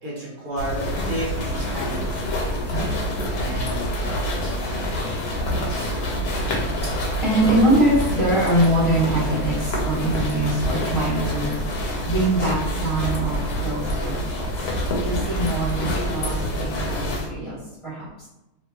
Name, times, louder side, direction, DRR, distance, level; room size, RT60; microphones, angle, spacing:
voice 1, 0.0-3.1 3.4-5.9, right 1 dB, 65° right, -6 dB, 1.2 m, -34 dB
sound 1, 0.6-17.3, equal, 85° left, 1.1 m, -26 dB
voice 2, 7.2-11.6 12.0-14.5 15.0-17.6 17.8-18.0, right 1 dB, 25° left, -12 dB, 1.1 m, -23 dB
2.7 x 2.4 x 2.3 m, 0.93 s
omnidirectional pair, 1.6 m